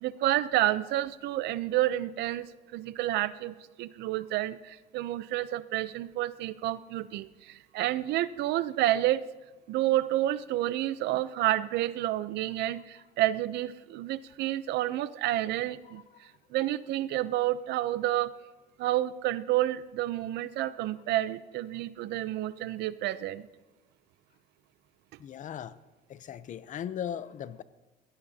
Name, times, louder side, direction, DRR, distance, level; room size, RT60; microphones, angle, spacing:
voice 1, 0.0-9.3 9.7-18.3 18.8-23.5, right 14 dB, 80° right, 15 dB, 0.6 m, -30 dB
voice 2, 25.2-25.8 26.1-27.6, left 9 dB, 50° left, 15 dB, 0.7 m, -38 dB
22.0 x 17.0 x 2.8 m, 1.2 s
cardioid pair, 110°, 17 cm